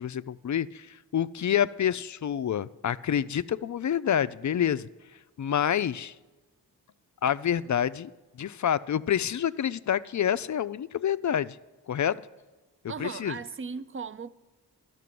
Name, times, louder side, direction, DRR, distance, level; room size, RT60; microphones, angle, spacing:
voice 1, 0.0-4.9 5.4-6.1 7.2-8.1 8.4-11.6 11.9-12.2 13.0-13.4, left 9 dB, 45° left, 0.4 m, -27 dB
voice 2, 12.9-14.3, right 5 dB, 30° right, 0.5 m, -37 dB
12.5 x 6.0 x 7.6 m
cardioid pair, 40°, 42 cm